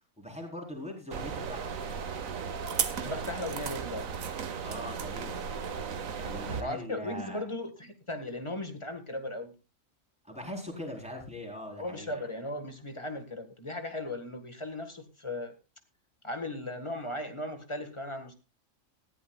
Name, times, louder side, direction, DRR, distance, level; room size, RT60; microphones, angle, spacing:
voice 1, 0.2-1.7 4.6-5.5 6.2-7.4 10.2-12.2, left 1 dB, 5° right, 0 dB, 4.2 m, -41 dB
sound 1, 1.1-6.6, right 6 dB, 85° right, 1.5 m, -35 dB
voice 2, 2.8-4.2 6.6-9.5 11.8-15.5 16.2-18.3, left 1 dB, 20° left, 7 dB, 1.8 m, -37 dB
19.0 x 14.5 x 2.4 m, 0.29 s
omnidirectional pair, 1.4 m